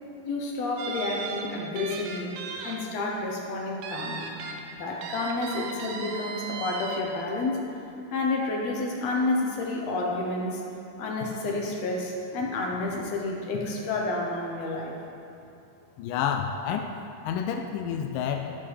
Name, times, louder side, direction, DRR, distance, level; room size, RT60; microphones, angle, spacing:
voice 1, 0.2-2.4 2.6-4.3 4.7-7.6 8.1-10.6 11.0-15.0, left 2 dB, 65° left, -1 dB, 1.9 m, -30 dB
sound 1, 0.8-2.8 3.1-3.2 3.8-4.6 5.0-7.0, right 5 dB, 85° right, 2.4 m, -37 dB
voice 2, 16.0-16.9 17.3-18.6, left 8 dB, 90° left, 4 dB, 2.2 m, -29 dB
14.5 x 7.0 x 3.4 m, 2.8 s
omnidirectional pair, 3.8 m